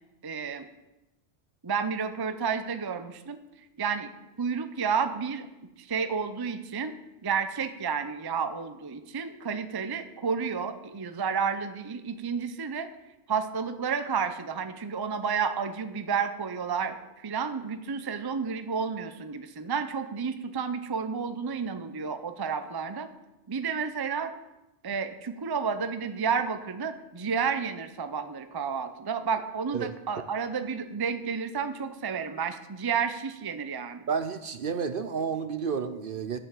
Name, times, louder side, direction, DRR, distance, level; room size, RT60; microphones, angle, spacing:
voice 1, 0.2-0.7 1.6-3.4 3.8-4.1 4.4-5.5 5.8-7.0 7.2-12.9 13.3-23.1 23.5-24.3 24.8-34.0, right 6 dB, 30° right, 10 dB, 0.5 m, -31 dB
voice 2, 34.1-36.4, right 6 dB, 55° right, 10 dB, 0.8 m, -31 dB
10.0 x 6.9 x 7.6 m, 0.97 s
omnidirectional pair, 1.2 m